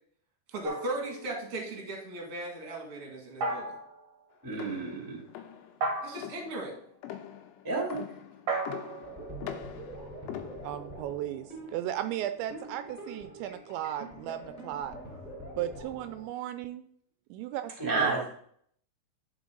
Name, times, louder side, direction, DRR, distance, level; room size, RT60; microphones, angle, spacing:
voice 1, 0.5-3.7 6.0-6.8 17.9-18.3, right 2 dB, 45° right, 0 dB, 1.9 m, -38 dB
sound 1, 0.6-1.7 3.4-4.0 5.8-6.5 8.5-10.2, right 2 dB, 65° right, 1.9 m, -35 dB
voice 2, 4.4-5.2 7.6-8.0 17.8-18.3, right 3 dB, 10° right, -2 dB, 1.0 m, -30 dB
sound 2, 4.5-11.0, left 11 dB, 80° left, 2.9 m, -43 dB
sound 3, 9.0-16.3, right 1 dB, 10° left, 2.5 m, -45 dB
voice 3, 10.6-15.0 15.6-16.9 17.3-18.3, right 12 dB, 85° right, 10 dB, 2.7 m, -35 dB
11.5 x 4.6 x 3.8 m, 0.64 s
omnidirectional pair, 5.3 m